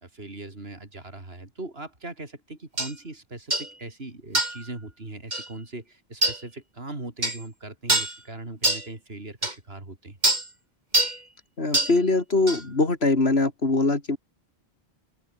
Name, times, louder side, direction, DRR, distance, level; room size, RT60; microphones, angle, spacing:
voice 1, 0.0-10.2, right 2 dB, 75° right, 4.3 m, -39 dB
sound 1, 2.8-2.9 3.5-3.7 4.3-4.6 5.3-5.5 6.2-6.4 7.2-7.4 7.9-8.2 8.6-8.9 9.4-9.5 10.2-10.5 10.9-11.2 11.7-12.0 12.5-12.6, right 2 dB, 45° right, 3.9 m, -24 dB
voice 2, 11.6-14.2, left 3 dB, 80° left, 3.5 m, -22 dB
open air
omnidirectional pair, 1.0 m